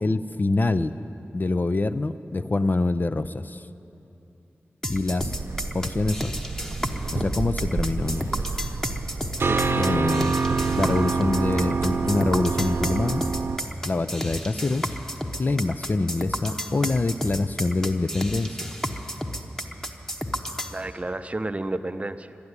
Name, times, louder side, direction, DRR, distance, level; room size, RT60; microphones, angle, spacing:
voice 1, 0.0-0.9 1.3-3.6 4.9-5.4 5.7-6.4 7.1-8.3 9.8-10.4 10.8-13.2 13.8-14.9 15.4-18.7, left 2 dB, 45° left, 11 dB, 0.4 m, -25 dB
sound 1, 4.8-20.8, equal, 10° left, 1.1 m, -32 dB
sound 2, 5.2-13.6, right 4 dB, 65° right, 0.9 m, -27 dB
voice 2, 9.4-9.9 20.7-22.4, right 2 dB, 30° right, 10 dB, 0.6 m, -32 dB
12.0 x 12.0 x 9.6 m, 2.9 s
cardioid pair, 50°, 4 cm